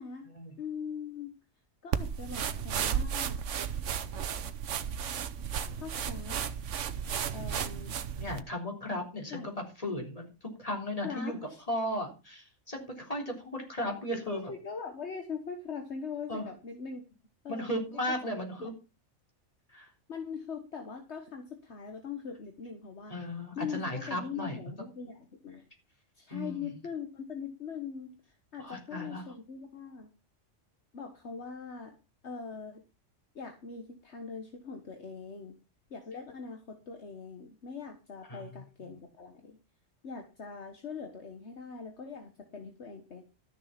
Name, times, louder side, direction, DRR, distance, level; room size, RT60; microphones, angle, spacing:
voice 1, 0.6-1.3 1.8-3.4 5.7-6.4 7.3-7.9 9.3-9.5 11.0-11.6 14.3-17.0 17.4-17.8 18.6-18.7 20.1-23.1 23.5-25.7 26.1-28.2 28.5-30.1 30.9-32.0 32.2-32.8 33.3-35.6 35.9-39.6 40.0-43.2, left 6 dB, 60° left, 5 dB, 1.7 m, -41 dB
sound 1, 1.9-8.4, right 8 dB, 70° right, 1.2 m, -34 dB
voice 2, 8.2-10.3 10.6-11.4 11.7-14.5 16.3-16.4 17.5-18.7 19.7-19.9 23.1-24.6 26.3-26.7 28.6-29.3 38.3-38.5, left 1 dB, 30° left, 2 dB, 3.9 m, -36 dB
13.5 x 6.8 x 5.9 m, 0.30 s
omnidirectional pair, 1.3 m